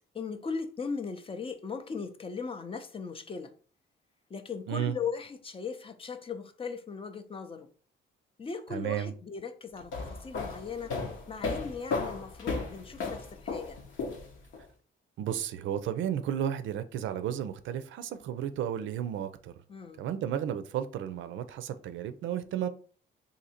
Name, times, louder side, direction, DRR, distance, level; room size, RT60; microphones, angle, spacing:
voice 1, 0.1-3.5 4.3-7.7 8.4-11.0 11.3-13.8 19.7-20.0, left 5 dB, 30° left, 0.5 m, -38 dB
voice 2, 8.7-9.1 15.2-19.5 20.0-22.7, right 10 dB, 75° right, 0.4 m, -33 dB
sound 1, 9.8-14.6, left 4 dB, 75° left, 1.0 m, -35 dB
2.7 x 2.6 x 4.2 m
cardioid pair, 90°, 20 cm